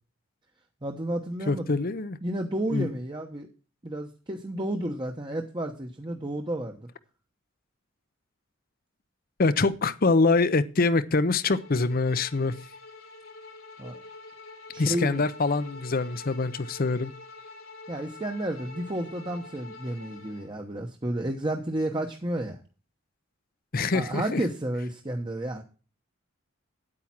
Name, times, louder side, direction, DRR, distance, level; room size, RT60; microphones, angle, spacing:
voice 1, 0.8-1.8 2.2-3.5 3.8-6.8 13.8-14.0 14.7-15.2 17.9-22.6 23.9-25.6, right 1 dB, 25° right, 3 dB, 1.0 m, -31 dB
voice 2, 1.5-2.2 2.7-2.9 9.4-12.5 14.8-17.1 23.7-24.4, left 3 dB, 45° left, 14 dB, 0.7 m, -24 dB
Bowed string instrument, 11.4-20.5, left 3 dB, 85° left, 2.2 m, -46 dB
9.7 x 8.7 x 6.0 m, 0.36 s
head